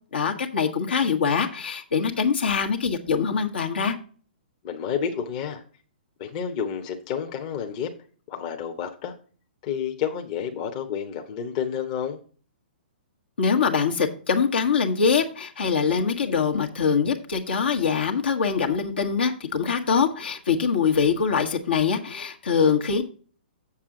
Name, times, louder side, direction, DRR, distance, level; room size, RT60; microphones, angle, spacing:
voice 1, 0.1-4.0 13.4-23.0, left 6 dB, 70° left, 3 dB, 1.6 m, -23 dB
voice 2, 4.6-5.6 6.2-7.9 8.3-9.1 9.6-12.2, left 8 dB, 40° left, 4 dB, 1.2 m, -30 dB
7.4 x 7.4 x 3.8 m, 0.41 s
hypercardioid pair, 125°, 6 cm